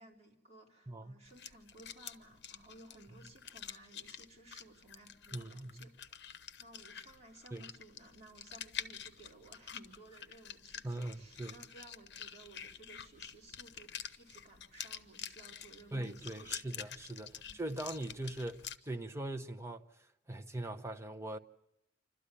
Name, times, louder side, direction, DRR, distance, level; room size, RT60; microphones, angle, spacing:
voice 1, 0.0-6.2 6.6-16.6 17.2-17.6, right 2 dB, 35° right, 3.8 m, -58 dB
voice 2, 0.9-1.2 5.3-5.9 7.5-7.6 10.8-11.5 15.9-19.8 20.3-21.4, right 1 dB, 15° right, 0.8 m, -41 dB
sound 1, 1.2-18.8, left 9 dB, 65° left, 0.9 m, -48 dB
27.0 x 13.0 x 9.9 m
head